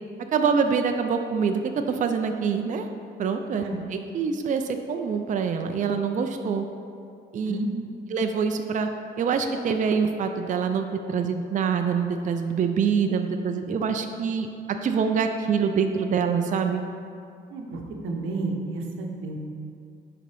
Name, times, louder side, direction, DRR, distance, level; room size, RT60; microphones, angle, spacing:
voice 1, 0.3-1.6 1.9-2.9 3.2-3.6 3.9-6.7 7.3-7.6 8.1-8.9 9.2-16.8, right 6 dB, 40° right, 6 dB, 0.4 m, -25 dB
voice 2, 7.4-7.9 17.5-19.4, right 2 dB, 90° right, 2 dB, 0.8 m, -31 dB
9.9 x 3.8 x 3.4 m, 2.4 s
cardioid pair, 90°, 20 cm